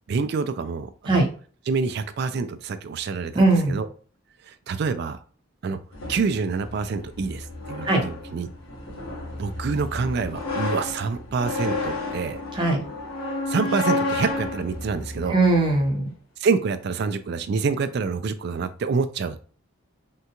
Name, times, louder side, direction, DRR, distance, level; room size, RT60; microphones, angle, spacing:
voice 1, 0.1-1.3 1.7-3.9 4.4-5.2 5.6-5.8 6.1-8.5 9.4-12.4 13.5-15.4 16.4-19.4, right 5 dB, 50° right, 11 dB, 0.3 m, -27 dB
voice 2, 3.3-3.8 7.8-8.0 12.5-12.8 15.3-16.1, right 2 dB, 20° right, 0 dB, 0.8 m, -20 dB
sound 1, 5.9-15.9, left 2 dB, 70° left, 1.1 m, -31 dB
3.6 x 2.2 x 2.9 m, 0.42 s
head